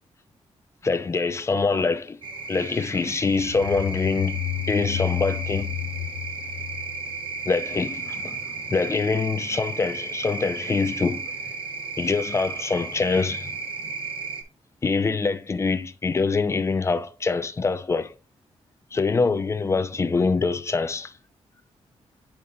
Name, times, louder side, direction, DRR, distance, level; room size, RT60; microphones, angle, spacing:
voice 1, 0.8-2.2 2.5-4.4 4.7-5.7 7.5-11.3 12.0-13.6 13.8-13.9 14.8-18.1 18.9-21.1, left 4 dB, 25° left, 0.5 m, -24 dB
sound 1, 2.2-14.4, right 4 dB, 45° right, 1.1 m, -34 dB
sound 2, 3.2-7.8, left 13 dB, 80° left, 0.6 m, -31 dB
10.0 x 4.2 x 2.6 m
wide cardioid pair, 135°, 12 cm